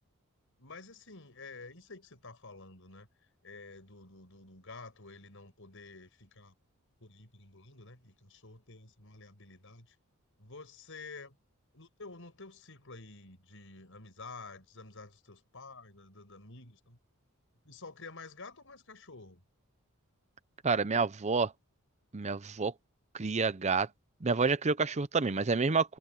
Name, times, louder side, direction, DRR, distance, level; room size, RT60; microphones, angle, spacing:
voice 1, 0.6-3.1 3.4-6.5 7.0-9.9 10.4-11.3 11.7-17.0 17.6-19.4, left 3 dB, 65° left, 6.8 m, -50 dB
voice 2, 20.6-21.5 22.1-22.7 23.1-23.9 24.2-26.0, right 4 dB, 30° right, 0.6 m, -28 dB
head